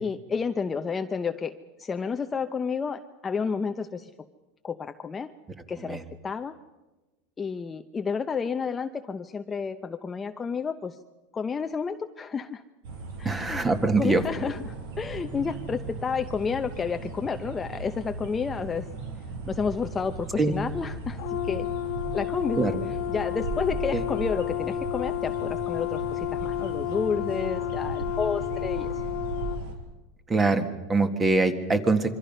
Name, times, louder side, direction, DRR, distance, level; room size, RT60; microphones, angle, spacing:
voice 1, 0.0-4.1 4.6-5.3 5.7-6.6 7.4-11.0 11.3-12.6 13.2-13.6 14.0-18.9 19.5-21.7 22.1-22.6 23.1-28.9, left 5 dB, 15° left, 7 dB, 0.7 m, -31 dB
sound 1, 12.8-29.7, right 3 dB, 75° right, 5.2 m, -37 dB
voice 2, 13.3-14.2 20.4-20.6 22.6-22.7 23.9-24.0 30.3-32.2, right 3 dB, 15° right, 8 dB, 1.8 m, -23 dB
Brass instrument, 21.2-29.6, left 17 dB, 55° left, 1.3 m, -31 dB
26.0 x 24.0 x 5.6 m, 1.1 s
supercardioid pair, 145°, 0 cm